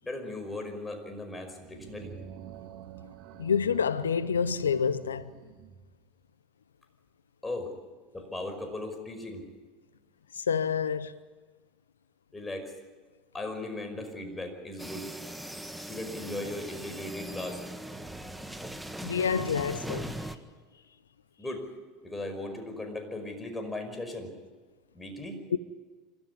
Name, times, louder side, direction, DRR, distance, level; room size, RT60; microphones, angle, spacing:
voice 1, 0.0-2.1 7.4-7.7 8.1-9.4 12.3-12.7 13.3-15.1 15.8-17.6 21.4-21.6 22.0-24.3 24.9-25.4, left 2 dB, 15° left, 5.3 m, -37 dB
sound 1, 1.4-6.0, right 9 dB, 55° right, 1.8 m, -48 dB
voice 2, 3.4-5.3 10.3-11.2 19.0-20.1 25.5-25.6, left 6 dB, 85° left, 0.6 m, -28 dB
sound 2, 14.8-20.4, right 1 dB, 5° right, 1.6 m, -40 dB
26.0 x 14.0 x 9.8 m
hypercardioid pair, 75°, 0 cm